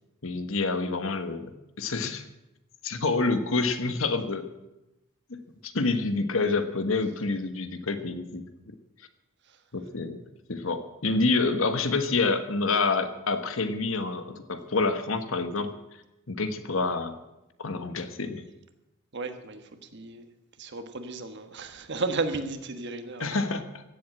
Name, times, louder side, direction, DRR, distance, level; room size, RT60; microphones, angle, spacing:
voice 1, 0.2-2.2 2.8-4.5 5.3-8.4 9.7-10.2 10.5-15.7 16.3-17.2 17.6-18.4 23.2-23.8, left 3 dB, 70° left, 9 dB, 1.3 m, -28 dB
voice 2, 19.1-20.3 20.6-23.4, right 3 dB, 55° right, 8 dB, 1.3 m, -34 dB
15.5 x 7.8 x 8.8 m, 0.94 s
head